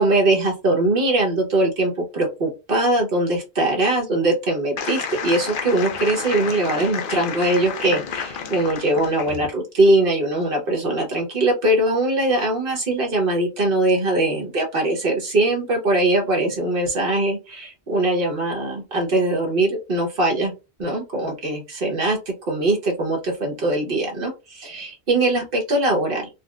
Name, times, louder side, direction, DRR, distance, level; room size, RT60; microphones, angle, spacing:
voice 1, 0.0-20.5 20.8-26.3, right 2 dB, 55° right, 0 dB, 1.2 m, -21 dB
sound 1, 4.8-9.5, left 6 dB, 60° left, 0.7 m, -30 dB
4.0 x 2.0 x 2.4 m, 0.27 s
omnidirectional pair, 1.1 m